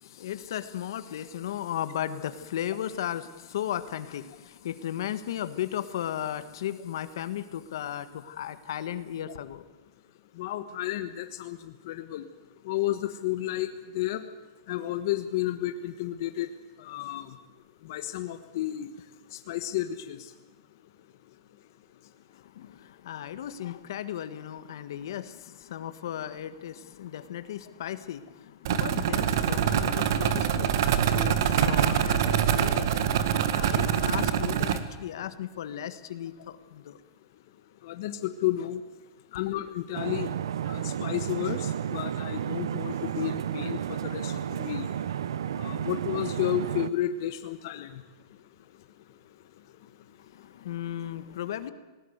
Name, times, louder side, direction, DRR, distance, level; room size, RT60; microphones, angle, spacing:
voice 1, 0.0-9.6 22.3-33.0 33.5-37.0 50.3-51.7, left 11 dB, 70° left, 12 dB, 1.5 m, -36 dB
voice 2, 10.4-12.2 12.6-13.7 13.9-14.2 14.7-16.5 16.8-17.3 17.8-18.9 19.3-20.3 37.8-38.8 39.3-40.3 40.7-44.9 45.6-48.0, left 13 dB, 50° left, 8 dB, 1.3 m, -32 dB
sound 1, 28.6-34.8, right 9 dB, 60° right, 1.8 m, -25 dB
sound 2, 39.9-46.9, right 9 dB, 85° right, 0.8 m, -32 dB
20.0 x 19.0 x 8.1 m, 1.2 s
supercardioid pair, 160°, 2 cm